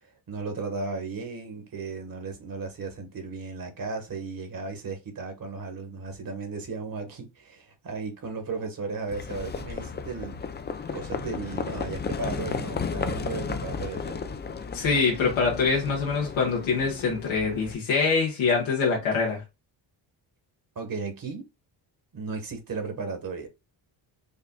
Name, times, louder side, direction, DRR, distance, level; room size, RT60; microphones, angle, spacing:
voice 1, 0.3-10.4 10.9-14.4 20.7-21.5 22.1-23.5, right 4 dB, 45° right, 1.5 m, -35 dB
Livestock farm animals working animals, 9.1-17.7, left 5 dB, 25° left, 0.4 m, -34 dB
voice 2, 14.7-19.4, left 5 dB, 85° left, 1.4 m, -24 dB
5.3 x 2.5 x 2.2 m
cardioid pair, 115°, 46 cm